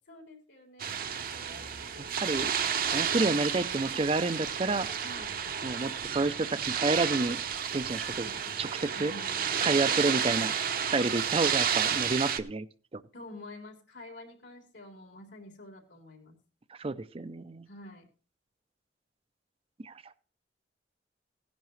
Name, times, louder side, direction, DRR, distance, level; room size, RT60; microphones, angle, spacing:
voice 1, 0.1-2.2 5.0-5.4 8.1-9.4 10.0-10.6 13.1-16.4 17.7-18.1, left 1 dB, 75° left, 1 dB, 3.7 m, -49 dB
sound 1, 0.8-12.4, right 8 dB, 50° right, 0.8 m, -31 dB
voice 2, 2.8-4.9 5.6-7.4 7.7-8.3 8.6-9.1 9.6-10.6 10.9-12.7 12.9-13.0 16.8-17.7 19.8-20.2, right 3 dB, 30° right, 15 dB, 0.5 m, -29 dB
17.0 x 10.5 x 3.2 m, 0.37 s
head